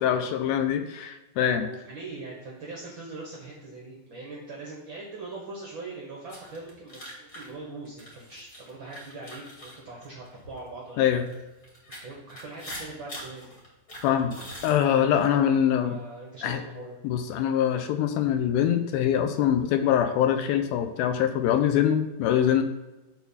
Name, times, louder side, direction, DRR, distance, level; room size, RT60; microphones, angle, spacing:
voice 1, 0.0-1.7 11.0-11.3 14.0-14.4 14.6-16.0 16.4-16.6 17.0-22.6, left 9 dB, 80° left, 8 dB, 2.4 m, -24 dB
voice 2, 1.5-11.2 12.0-13.6 15.7-17.0, right 3 dB, 90° right, -3 dB, 1.0 m, -41 dB
sound 1, 6.3-10.6 11.1-15.3, equal, 30° left, 2.5 m, -43 dB
10.5 x 4.0 x 5.6 m, 1.1 s
omnidirectional pair, 4.5 m